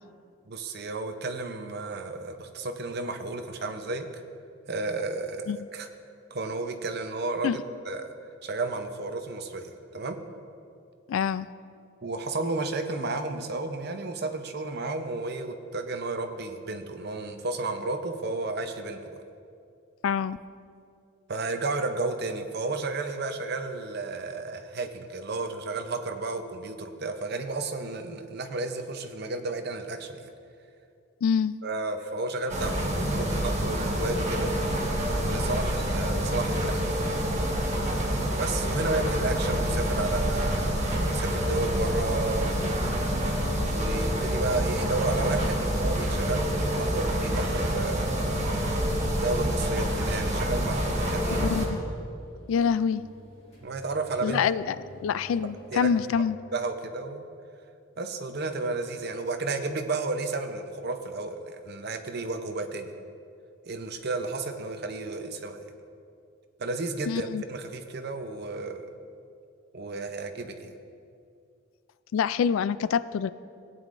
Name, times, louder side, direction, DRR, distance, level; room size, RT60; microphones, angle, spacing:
voice 1, 0.5-4.0 4.7-5.9 6.3-7.6 7.9-8.1 8.4-10.2 12.0-19.2 21.3-30.3 31.6-34.5 35.2-37.1 38.4-43.0 43.7-48.3 49.0-51.5 53.6-54.4 55.7-55.9 56.5-57.3 58.0-62.9 63.7-65.6 66.6-68.8 69.7-70.7, right 3 dB, 50° right, 7 dB, 0.7 m, -32 dB
voice 2, 11.1-11.5 20.0-20.4 31.2-31.6 51.2-51.8 52.5-53.0 54.2-54.8 55.0-56.4 67.1-67.4 72.1-73.3, left 7 dB, 75° left, 16 dB, 0.3 m, -26 dB
sound 1, 32.5-51.7, equal, 35° right, 1.5 m, -27 dB
sound 2, 38.9-50.4 50.6-50.7 51.0-51.1, equal, 5° right, 1.8 m, -37 dB
sound 3, 44.5-56.1, right 1 dB, 30° left, 2.0 m, -52 dB
17.5 x 9.2 x 2.5 m, 2.4 s
head